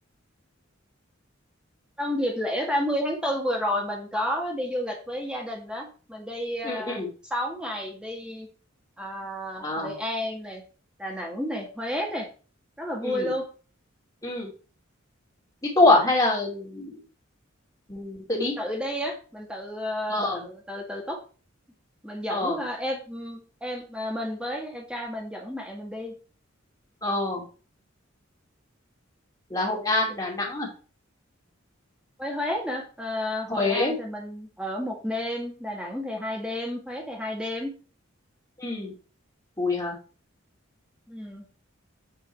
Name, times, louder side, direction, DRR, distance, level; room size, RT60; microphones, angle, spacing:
voice 1, 2.0-7.0 7.3-8.5 9.0-10.6 11.0-12.3 12.8-13.5 18.4-21.2 22.0-26.2 32.2-37.7 41.1-41.5, left 1 dB, 5° right, 0 dB, 1.9 m, -31 dB
voice 2, 6.6-7.1 9.6-9.9 13.0-13.3 14.2-14.5 15.6-17.0 17.9-18.5 20.1-20.4 22.3-22.6 27.0-27.4 29.5-30.7 33.5-33.9 38.6-38.9 39.6-40.0, left 2 dB, 15° left, -2 dB, 2.6 m, -25 dB
7.8 x 4.5 x 4.5 m, 0.37 s
head